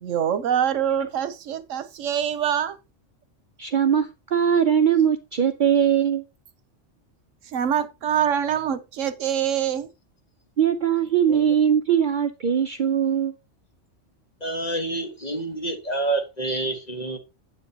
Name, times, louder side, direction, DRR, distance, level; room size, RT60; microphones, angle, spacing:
voice 1, 0.0-2.8 7.5-9.9, right 9 dB, 85° right, 1.2 m, -24 dB
voice 2, 3.6-6.2 10.6-13.3, right 8 dB, 50° right, 0.7 m, -21 dB
voice 3, 14.4-17.2, right 2 dB, 35° left, 1.5 m, -28 dB
9.6 x 8.3 x 2.8 m
omnidirectional pair, 1.3 m